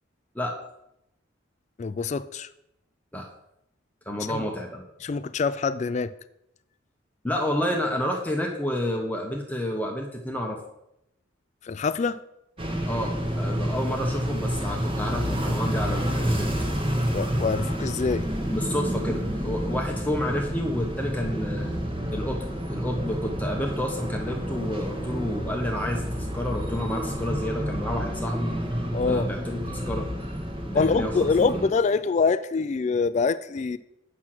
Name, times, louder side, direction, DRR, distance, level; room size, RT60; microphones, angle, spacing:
voice 1, 1.8-2.5 4.3-4.4 5.0-6.1 11.7-12.2 17.1-18.2 28.8-29.3 29.8-29.9 30.7-33.8, left 4 dB, 35° left, 13 dB, 0.3 m, -25 dB
voice 2, 4.1-4.8 7.2-10.6 12.9-16.5 18.5-21.7 22.1-30.1 30.7-31.7, left 1 dB, 10° left, 1 dB, 0.8 m, -30 dB
sound 1, 12.6-31.7, equal, 25° right, 1.2 m, -29 dB
8.2 x 6.0 x 5.9 m, 0.83 s
head